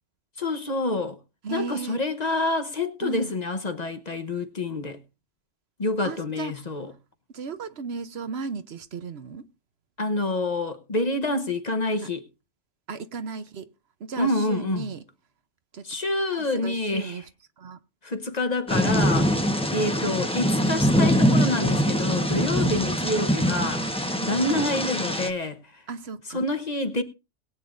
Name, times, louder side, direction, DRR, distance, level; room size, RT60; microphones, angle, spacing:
voice 1, 0.4-1.2 1.5-5.0 5.8-6.9 10.0-12.2 14.2-14.9 15.8-17.2 18.0-19.3 19.7-25.8 26.3-27.0, left 2 dB, 40° left, 1.1 m, -27 dB
voice 2, 1.4-2.0 3.0-3.3 6.0-6.5 7.3-9.4 12.0-12.1 12.9-13.7 14.0-15.0 15.7-15.9 16.3-17.2 17.6-17.8 24.5-24.7 25.9-26.4, right 5 dB, 65° right, 1.1 m, -35 dB
Thunder / Rain, 18.7-25.3, equal, 5° left, 1.1 m, -23 dB
21.0 x 9.0 x 2.6 m
omnidirectional pair, 1.2 m